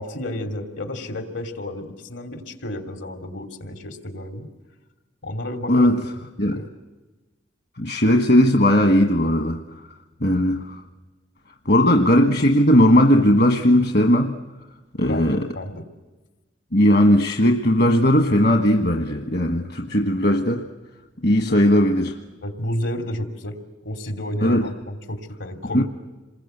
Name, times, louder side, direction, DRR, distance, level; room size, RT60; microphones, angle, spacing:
voice 1, 0.0-4.5 5.2-5.9 6.5-6.7 15.1-15.8 22.4-23.6 23.8-25.8, left 1 dB, 85° left, 5 dB, 3.0 m, -31 dB
voice 2, 5.7-6.0 6.4-6.6 7.8-9.6 10.2-10.8 11.6-14.4 15.0-15.4 16.7-20.7 21.2-22.2 24.4-24.7 25.7-25.8, equal, 60° left, 4 dB, 1.4 m, -17 dB
28.0 x 21.5 x 8.1 m, 1.2 s
head